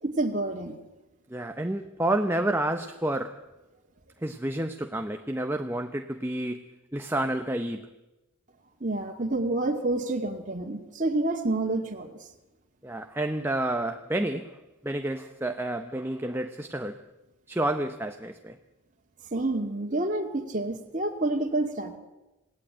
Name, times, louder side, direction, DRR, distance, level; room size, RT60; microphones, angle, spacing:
voice 1, 0.0-0.8 8.8-12.2 19.3-22.0, right 2 dB, 35° right, 2.3 m, -28 dB
voice 2, 1.3-3.5 4.2-7.9 12.8-14.6 14.8-17.1 17.5-18.6, right 1 dB, 10° right, 0.8 m, -30 dB
27.0 x 18.0 x 8.9 m
head